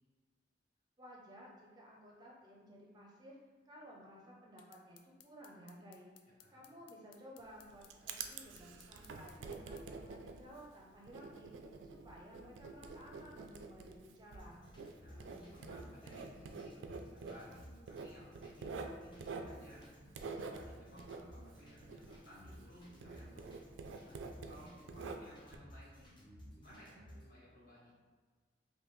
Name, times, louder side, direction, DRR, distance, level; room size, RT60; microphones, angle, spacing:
voice 1, 1.0-3.4 3.6-14.7, equal, 25° right, -3 dB, 0.5 m, -56 dB
sound 1, 4.6-9.9, left 10 dB, 80° left, 0.3 m, -63 dB
Writing, 7.4-22.7 23.0-25.6, right 4 dB, 80° right, 0.3 m, -48 dB
sound 2, 14.4-27.3, equal, 25° left, 0.8 m, -56 dB
voice 2, 15.0-17.6 17.9-19.9 20.3-23.5 24.0-24.2 24.5-26.1 26.6-27.9, equal, 50° left, -7 dB, 1.2 m, -59 dB
3.5 x 2.5 x 3.1 m, 1.4 s
head